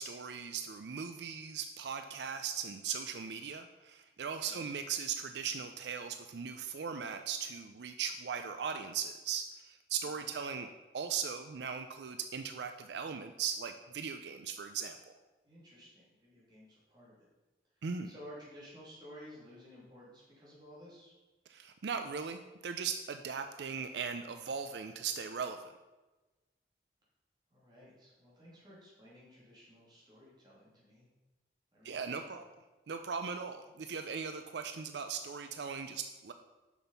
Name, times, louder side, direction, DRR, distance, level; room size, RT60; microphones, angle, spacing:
voice 1, 0.0-15.1 17.8-18.1 21.5-25.6 31.8-32.4 32.9-36.3, right 6 dB, 80° right, 8 dB, 0.4 m, -39 dB
voice 2, 10.0-10.3 15.4-17.3 17.8-21.1 27.5-31.1 31.7-32.4, equal, 25° right, -6 dB, 2.9 m, -54 dB
7.1 x 6.1 x 5.5 m, 1.2 s
head